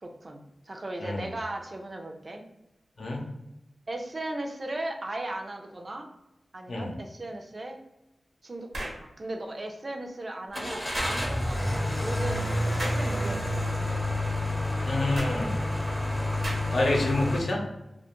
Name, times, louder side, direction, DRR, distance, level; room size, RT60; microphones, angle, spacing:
voice 1, 0.0-2.4 3.9-6.1 6.5-7.8 8.4-14.2, right 1 dB, 45° right, 3 dB, 0.4 m, -37 dB
sound 1, 8.7-9.0 10.9-11.2 12.8-13.1 15.1-15.4 16.4-16.8, right 1 dB, 75° right, 0.7 m, -35 dB
Car / Engine starting, 10.5-17.4, left 1 dB, 15° left, 0.6 m, -29 dB
voice 2, 14.8-15.6 16.7-17.6, left 2 dB, 75° left, -1 dB, 0.6 m, -27 dB
2.2 x 2.1 x 2.9 m, 0.92 s
cardioid pair, 55°, 0 cm